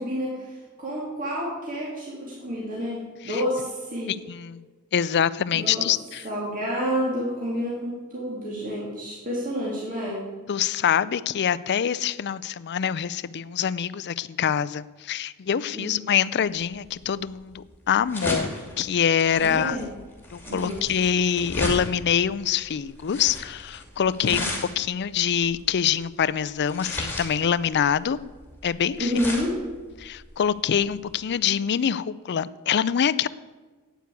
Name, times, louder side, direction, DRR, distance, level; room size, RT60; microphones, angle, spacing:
voice 1, 0.0-4.2 5.5-5.9 6.2-10.3 15.7-16.1 19.4-19.9 20.5-20.8 24.2-24.6 29.0-29.7, equal, 40° right, -5 dB, 2.5 m, -29 dB
voice 2, 4.3-4.6 4.9-6.2 10.5-19.8 20.3-24.5 24.8-28.2 28.6-29.1 30.0-33.3, left 8 dB, 50° left, 16 dB, 0.4 m, -25 dB
sound 1, 16.6-31.3, left 1 dB, 10° left, 2.5 m, -35 dB
9.5 x 9.2 x 8.2 m, 1.4 s
head